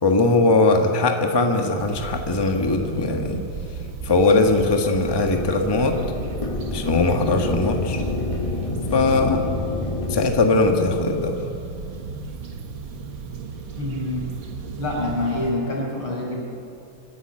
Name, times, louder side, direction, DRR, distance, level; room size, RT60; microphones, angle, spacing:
voice 1, 0.0-3.4 4.0-6.0 6.7-8.0 8.9-9.4 10.1-11.4, left 3 dB, 15° left, 3 dB, 1.2 m, -20 dB
sound 1, 1.8-15.5, right 5 dB, 70° right, 2.4 m, -35 dB
sound 2, 4.1-10.2, left 2 dB, 30° left, 0.5 m, -29 dB
voice 2, 13.8-14.3 14.8-16.4, left 1 dB, 85° left, -2 dB, 6.2 m, -26 dB
25.5 x 11.5 x 9.7 m, 2.6 s
omnidirectional pair, 2.3 m